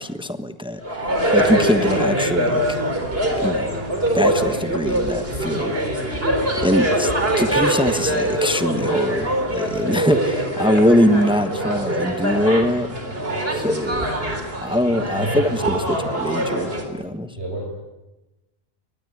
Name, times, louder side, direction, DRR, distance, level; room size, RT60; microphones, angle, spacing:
voice 1, 0.0-2.6 3.4-3.8 4.1-7.1 7.4-9.3 9.5-12.9 13.5-14.1 14.6-17.3, left 1 dB, 5° right, 9 dB, 1.2 m, -22 dB
sound 1, 0.8-16.8, right 1 dB, 65° right, 4.1 m, -23 dB
voice 2, 9.8-10.2 15.1-15.8 17.3-17.7, right 2 dB, 85° right, -2 dB, 5.5 m, -30 dB
23.0 x 20.0 x 9.8 m, 1.0 s
omnidirectional pair, 1.1 m